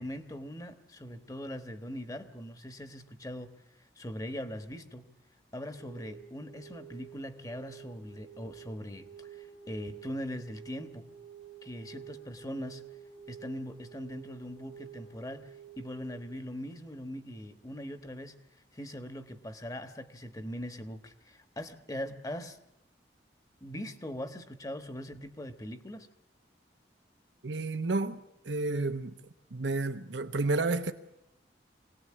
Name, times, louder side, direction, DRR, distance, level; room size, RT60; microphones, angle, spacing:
voice 1, 0.0-3.6 4.0-5.1 5.5-11.1 11.6-12.8 13.3-22.6 23.6-26.1, equal, 20° left, 1.3 m, -41 dB
sound 1, 5.7-16.2, right 8 dB, 75° left, 1.9 m, -50 dB
voice 2, 27.4-28.2 28.4-29.1 29.5-30.9, right 3 dB, 85° right, 1.0 m, -30 dB
25.0 x 18.5 x 8.6 m
head